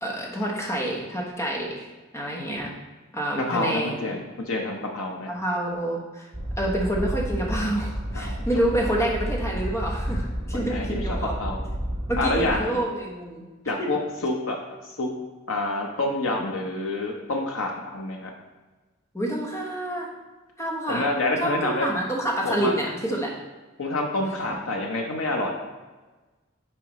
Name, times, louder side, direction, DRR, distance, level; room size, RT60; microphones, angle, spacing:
voice 1, 0.0-2.7 3.1-4.2 5.3-6.3 6.6-11.3 12.1-13.4 13.8-13.9 19.1-20.1 20.6-21.1 21.4-23.3, right 1 dB, 15° left, -2 dB, 1.1 m, -28 dB
voice 2, 3.4-5.3 8.1-8.4 10.5-11.0 11.4-11.6 12.2-12.8 13.7-14.6 14.8-15.1 15.5-18.3 20.9-21.9 22.4-22.8 23.8-25.6, left 2 dB, 85° left, 1 dB, 0.8 m, -27 dB
sound 1, 6.3-12.6, equal, 25° right, 1.7 m, -30 dB
8.8 x 4.8 x 3.1 m, 1.2 s
head